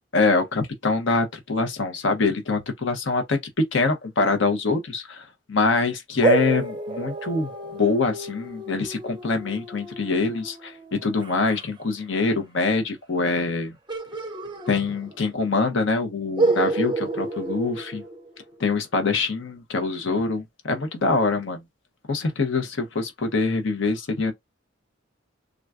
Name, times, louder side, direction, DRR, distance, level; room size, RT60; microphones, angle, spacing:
voice 1, 0.1-3.4 3.7-13.7 14.7-18.0 18.6-21.6 22.1-24.3, left 3 dB, 75° left, 0.8 m, -24 dB
sound 1, 6.2-11.7 13.9-15.4 15.6-15.7 16.4-18.6, right 3 dB, 25° right, 0.5 m, -29 dB
3.7 x 2.2 x 2.3 m
head